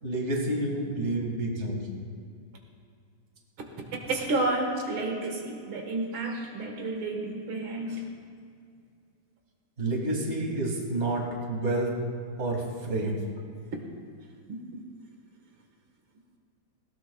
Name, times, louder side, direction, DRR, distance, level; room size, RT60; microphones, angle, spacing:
voice 1, 0.0-1.9 7.9-8.0 9.8-11.9 12.4-13.2, right 2 dB, 35° right, -1 dB, 2.3 m, -29 dB
voice 2, 4.1-8.1, right 2 dB, 85° right, 1 dB, 2.4 m, -30 dB
19.5 x 17.0 x 2.3 m, 2.3 s
omnidirectional pair, 2.2 m